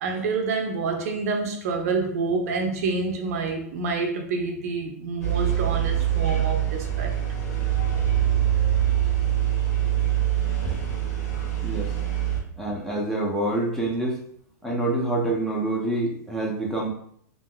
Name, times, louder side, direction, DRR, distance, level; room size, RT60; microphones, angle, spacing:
voice 1, 0.0-7.1 10.6-10.8, right 4 dB, 60° right, 2 dB, 0.6 m, -27 dB
sound 1, 5.2-12.4, right 11 dB, 70° left, 1.2 m, -24 dB
voice 2, 12.6-14.2 14.6-16.9, right 2 dB, 5° left, -3 dB, 0.6 m, -26 dB
3.4 x 2.5 x 2.2 m, 0.66 s
hypercardioid pair, 125°, 9 cm